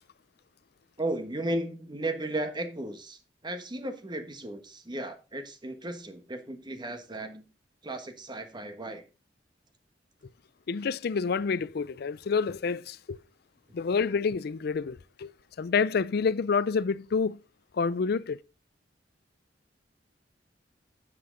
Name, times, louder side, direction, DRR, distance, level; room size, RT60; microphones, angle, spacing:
voice 1, 1.0-7.4 7.8-9.0, right 1 dB, 25° right, 1.3 m, -35 dB
voice 2, 10.7-13.2 13.7-15.3 15.6-17.4 17.7-18.4, left 5 dB, 60° left, 0.4 m, -28 dB
9.6 x 7.6 x 3.8 m
head